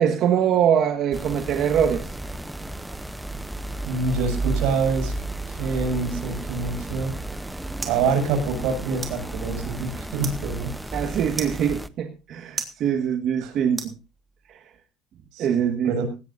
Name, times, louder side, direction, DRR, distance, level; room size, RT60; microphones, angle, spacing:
voice 1, 0.0-2.1 10.9-13.9 14.5-14.6 15.4-16.0, right 8 dB, 55° right, 1.6 m, -23 dB
sound 1, 1.1-11.9, right 2 dB, 5° right, 0.7 m, -33 dB
voice 2, 3.9-5.1 5.5-7.1 7.9-11.0 13.4-13.5 15.3-16.1, right 4 dB, 85° right, 6.5 m, -26 dB
sound 2, 7.0-14.6, right 5 dB, 25° right, 3.2 m, -40 dB
18.5 x 17.0 x 2.6 m
cardioid pair, 135°, 0 cm